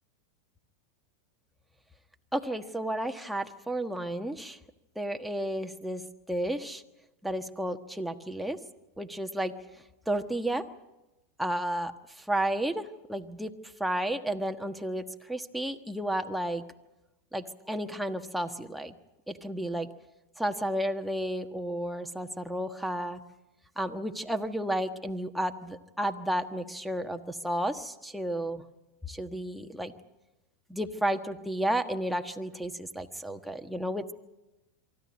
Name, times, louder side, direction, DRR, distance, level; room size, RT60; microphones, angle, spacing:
voice 1, 2.3-4.6 4.9-6.0 6.3-6.8 7.2-8.6 9.0-9.5 10.1-10.6 11.4-11.9 12.2-13.5 13.8-16.6 17.3-18.9 19.3-19.9 20.4-23.2 23.8-28.6 29.1-29.9 30.7-34.1, right 1 dB, ahead, 4 dB, 1.3 m, -32 dB
24.0 x 14.0 x 9.6 m, 1.0 s
supercardioid pair, 120°, 0 cm